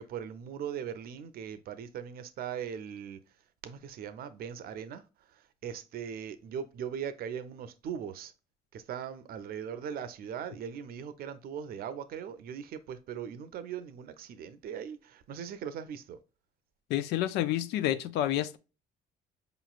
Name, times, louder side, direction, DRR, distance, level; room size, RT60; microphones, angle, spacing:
voice 1, 0.0-3.2 3.6-5.0 5.3-8.3 8.7-16.2, right 8 dB, 65° right, 0.6 m, -39 dB
voice 2, 16.9-18.6, left 12 dB, 85° left, 0.5 m, -29 dB
4.9 x 3.0 x 2.4 m
cardioid pair, 110°, 17 cm